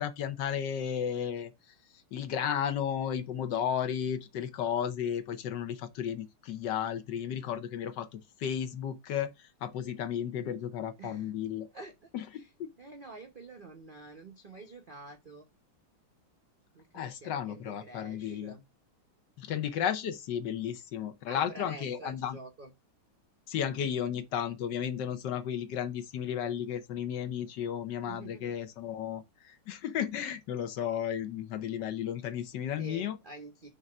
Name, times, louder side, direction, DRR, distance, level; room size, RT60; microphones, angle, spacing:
voice 1, 0.0-1.5 2.1-9.3 9.6-11.7 12.1-12.3 12.6-12.7 16.9-18.5 19.4-22.4 23.5-33.2, left 9 dB, 65° left, 1.2 m, -33 dB
voice 2, 11.0-11.3 11.7-12.5 12.8-15.4 16.7-18.6 21.3-22.7 28.1-28.5 32.8-33.7, right 2 dB, 85° right, 0.4 m, -48 dB
5.3 x 3.8 x 5.9 m
omnidirectional pair, 2.3 m